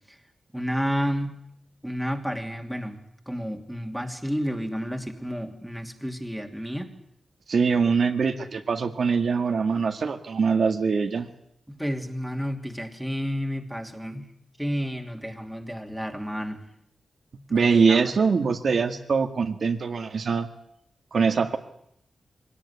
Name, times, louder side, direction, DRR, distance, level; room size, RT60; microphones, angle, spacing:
voice 1, 0.5-1.3 1.8-3.0 3.3-6.9 11.7-14.3 14.6-16.6 17.5-18.1, equal, ahead, 4 dB, 2.8 m, -31 dB
voice 2, 7.5-11.3 17.5-20.5 21.1-21.6, right 5 dB, 65° right, 6 dB, 1.9 m, -23 dB
23.0 x 18.0 x 9.9 m, 0.74 s
wide cardioid pair, 100°, 0 cm